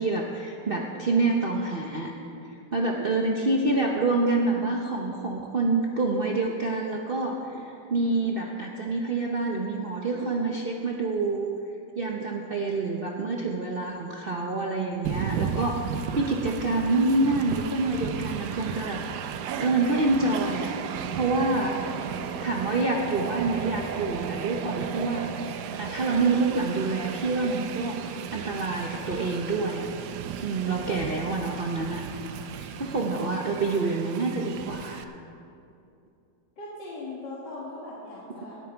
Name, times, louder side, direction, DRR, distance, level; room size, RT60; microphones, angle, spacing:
voice 1, 0.0-2.1 2.5-11.5 12.0-19.0 19.6-20.7 21.1-21.7 22.4-29.9 30.4-32.0 32.5-35.0, right 3 dB, 45° right, 0 dB, 0.8 m, -27 dB
voice 2, 2.8-3.3 21.8-22.1 36.6-38.6, left 2 dB, 75° left, -6 dB, 2.4 m, -40 dB
Train, 15.0-35.0, right 7 dB, 75° right, 1.2 m, -34 dB
18.5 x 8.9 x 4.5 m, 2.6 s
omnidirectional pair, 1.9 m